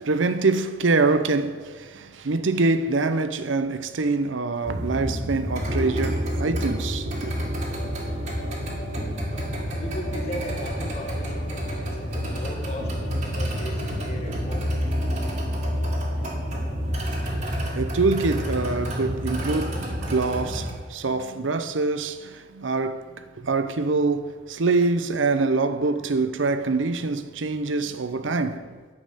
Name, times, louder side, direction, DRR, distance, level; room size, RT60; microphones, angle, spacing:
voice 1, 0.0-7.3 17.3-17.4 17.7-28.8, right 3 dB, 85° right, 0.7 m, -25 dB
sound 1, 4.6-20.7, equal, 40° right, 1.8 m, -28 dB
sound 2, 7.7-23.8 24.0-24.1 24.4-25.1, right 1 dB, 50° left, 2.9 m, -43 dB
voice 2, 9.8-14.7, left 1 dB, 35° left, 1.6 m, -37 dB
9.8 x 6.4 x 8.0 m
head